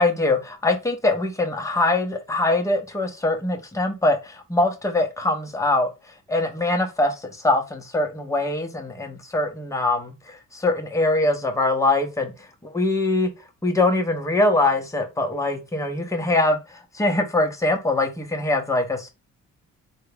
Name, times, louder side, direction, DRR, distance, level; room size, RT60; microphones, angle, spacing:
voice 1, 0.0-5.9 6.3-13.3 13.6-19.1, left 2 dB, 10° left, 0.9 m, -23 dB
3.5 x 2.3 x 3.3 m
cardioid pair, 90°, 30 cm